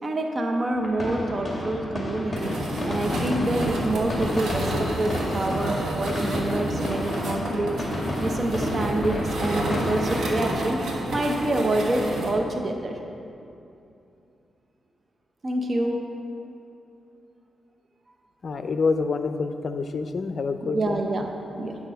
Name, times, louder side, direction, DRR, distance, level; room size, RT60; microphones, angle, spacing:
voice 1, 0.0-2.5 2.8-7.7 8.2-10.8 11.1-13.0 15.4-16.0 20.6-21.3 21.6-21.8, right 1 dB, 40° right, 3 dB, 0.8 m, -27 dB
sound 1, 0.7-10.5, left 1 dB, 20° left, 2.4 m, -30 dB
sound 2, 2.4-12.3, right 1 dB, 75° right, 1.4 m, -30 dB
voice 2, 18.4-21.0, left 4 dB, 55° left, 8 dB, 0.5 m, -27 dB
9.4 x 6.2 x 5.7 m, 2.7 s
cardioid pair, 80°, 0 cm